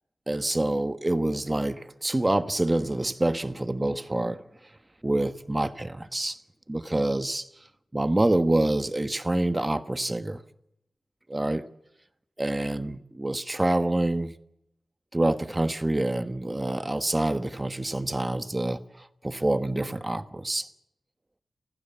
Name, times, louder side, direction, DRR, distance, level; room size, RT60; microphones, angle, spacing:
voice 1, 0.3-4.4 5.0-6.4 6.7-7.5 7.9-10.4 11.3-11.6 12.4-14.3 15.1-18.8 19.2-20.7, right 1 dB, 20° right, 1.2 m, -26 dB
29.5 x 15.5 x 7.3 m
wide cardioid pair, 80°, 0 cm